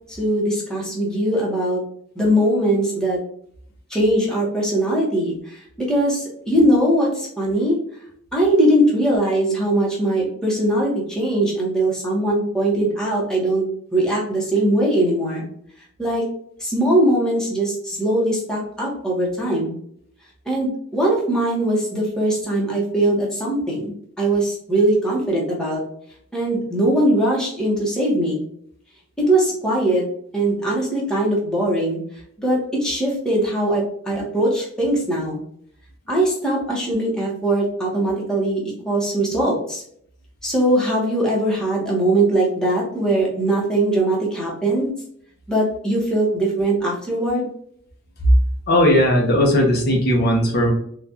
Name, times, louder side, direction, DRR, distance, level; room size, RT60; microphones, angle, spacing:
voice 1, 0.1-1.8 2.1-3.2 3.9-7.8 8.3-13.7 13.9-15.4 16.0-16.3 16.6-19.7 20.4-25.8 26.3-28.4 29.2-30.1 30.3-32.0 32.4-35.4 36.1-39.8 40.4-44.9 45.5-47.5, right 1 dB, 5° left, -4 dB, 1.0 m, -21 dB
voice 2, 48.7-50.7, left 1 dB, 50° left, 0 dB, 0.8 m, -17 dB
3.9 x 2.4 x 2.7 m, 0.65 s
head